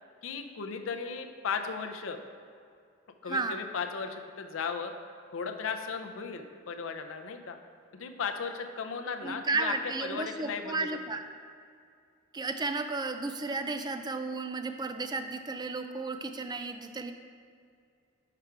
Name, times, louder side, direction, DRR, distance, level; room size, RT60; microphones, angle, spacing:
voice 1, 0.2-2.2 3.2-4.9 5.3-7.6 8.0-9.7 10.0-10.9, left 5 dB, 70° left, 5 dB, 0.5 m, -36 dB
voice 2, 3.3-3.6 9.2-11.2 12.3-17.1, right 3 dB, 20° right, 8 dB, 0.3 m, -33 dB
5.8 x 4.9 x 4.6 m, 2.3 s
head